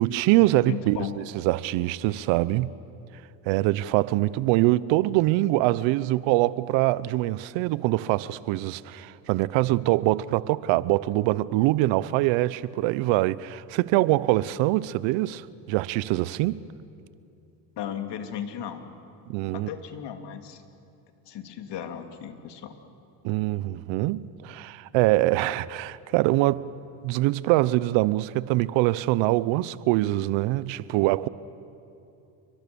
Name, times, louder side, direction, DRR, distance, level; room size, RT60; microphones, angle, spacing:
voice 1, 0.0-2.7 3.5-16.6 19.3-19.7 23.2-26.7 27.0-31.3, right 17 dB, 75° right, 0.9 m, -24 dB
voice 2, 0.7-1.1 17.8-18.8 19.5-20.6 21.3-22.7, left 9 dB, 60° left, 2.7 m, -35 dB
29.5 x 24.0 x 7.0 m
supercardioid pair, 80°, 46 cm